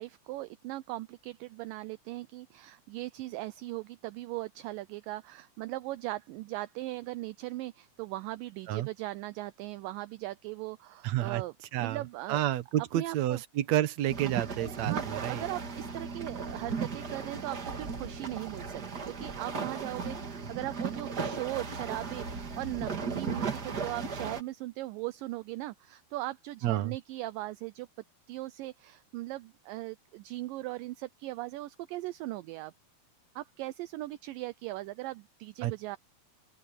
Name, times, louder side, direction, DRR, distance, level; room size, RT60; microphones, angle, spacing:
voice 1, 0.0-12.4 12.9-13.4 14.9-27.9 28.3-32.7 33.4-36.0, right 18 dB, 80° right, 2.1 m, -39 dB
voice 2, 11.0-11.4 11.7-12.0 12.3-15.4 26.6-27.0 35.6-35.7, right 13 dB, 60° right, 2.1 m, -30 dB
sound 1, 14.1-24.4, right 5 dB, 35° right, 1.8 m, -36 dB
open air
omnidirectional pair, 4.3 m